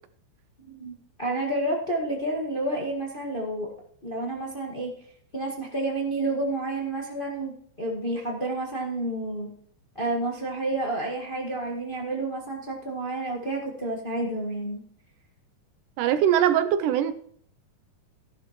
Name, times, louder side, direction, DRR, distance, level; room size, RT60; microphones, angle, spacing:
voice 1, 0.7-3.7 4.0-4.9 5.3-7.5 7.8-9.5 9.9-14.8, right 2 dB, 30° left, 1.0 m, -30 dB
voice 2, 16.0-17.1, right 10 dB, 80° right, 2.0 m, -21 dB
14.5 x 11.5 x 3.1 m
omnidirectional pair, 3.9 m